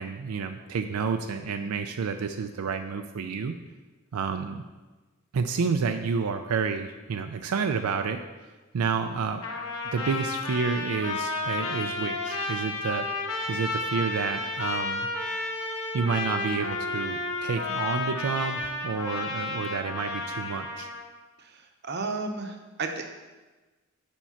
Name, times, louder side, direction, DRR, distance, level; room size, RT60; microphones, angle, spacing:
voice 1, 0.0-3.5 4.1-4.6 5.3-8.2 8.7-9.4 9.9-13.1 13.5-15.1 15.9-20.9, right 5 dB, 85° right, 6 dB, 0.4 m, -29 dB
Trumpet, 9.4-21.0, left 3 dB, 85° left, 1.2 m, -32 dB
voice 2, 21.4-23.1, right 3 dB, 50° right, 4 dB, 0.8 m, -33 dB
7.3 x 4.4 x 5.7 m, 1.2 s
head